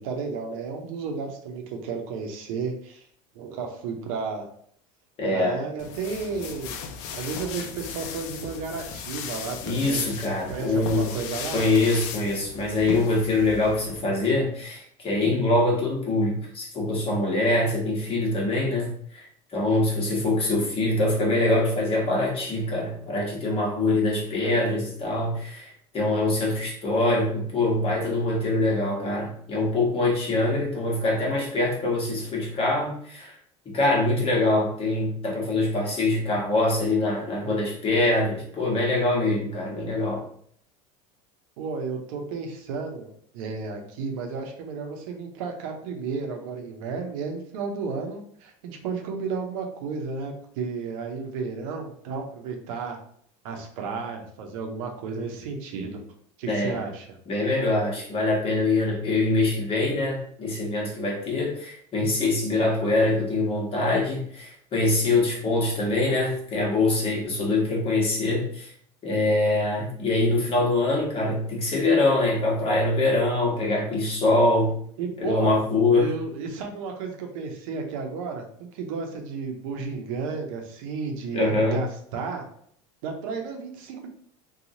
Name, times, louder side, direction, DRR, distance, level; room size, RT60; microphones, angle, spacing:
voice 1, 0.0-3.0 3.3-4.5 5.3-6.8 7.1-10.1 10.5-11.6 41.6-43.1 43.3-53.0 53.4-56.0 56.4-57.1 75.0-75.6 75.9-81.9 82.1-82.4 83.0-84.1, right 5 dB, 80° right, 3 dB, 0.7 m, -33 dB
voice 2, 5.2-5.6 9.6-11.1 11.5-19.3 19.5-33.4 33.6-40.2 56.5-56.8 57.3-68.7 69.0-74.7 75.2-76.1 81.3-81.8, left 2 dB, 35° left, -2 dB, 1.1 m, -24 dB
sound 1, 5.8-14.0, left 7 dB, 70° left, 0.5 m, -37 dB
2.9 x 2.3 x 2.7 m, 0.62 s
supercardioid pair, 110°, 17 cm